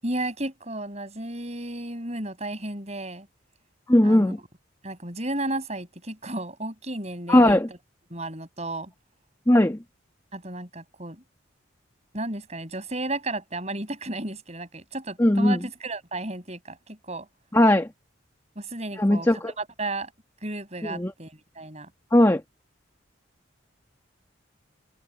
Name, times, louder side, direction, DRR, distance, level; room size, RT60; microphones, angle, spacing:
voice 1, 0.0-3.3 4.0-4.4 4.8-7.6 8.1-8.9 10.3-11.2 12.1-17.3 18.6-20.1 20.4-21.9, right 2 dB, 35° right, 6.3 m, -33 dB
voice 2, 3.9-4.4 7.3-7.7 9.5-9.8 15.2-15.6 17.5-17.9 19.0-19.5 20.8-21.1 22.1-22.4, left 1 dB, 15° left, 1.2 m, -18 dB
open air
head